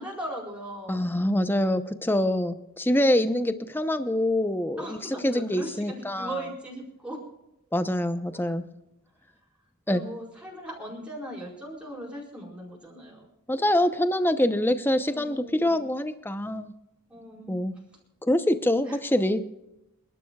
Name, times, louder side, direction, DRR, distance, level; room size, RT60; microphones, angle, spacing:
voice 1, 0.0-1.1 4.8-7.2 9.9-13.3 15.1-15.8 17.1-17.6 18.9-19.0, right 1 dB, 5° right, -5 dB, 4.7 m, -39 dB
voice 2, 0.9-5.0 5.2-6.4 7.7-8.7 9.9-10.0 13.5-16.7 17.5-17.7 18.2-19.4, left 1 dB, 10° left, 10 dB, 0.7 m, -25 dB
29.0 x 12.0 x 2.3 m, 0.89 s
head